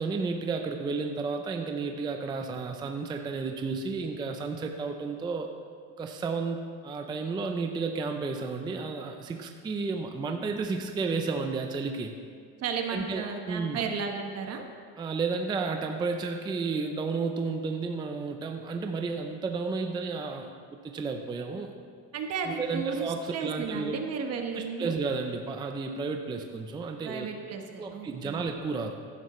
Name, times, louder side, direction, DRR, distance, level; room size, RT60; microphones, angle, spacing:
voice 1, 0.0-5.5 6.0-12.1 12.9-13.8 15.0-21.7 22.4-24.0 24.5-27.3 27.8-28.9, right 4 dB, 10° right, 4 dB, 0.4 m, -32 dB
voice 2, 12.6-14.7 22.1-25.0 27.0-28.5, right 5 dB, 40° right, 4 dB, 1.2 m, -34 dB
15.5 x 11.0 x 3.1 m, 2.1 s
cardioid pair, 145°, 38 cm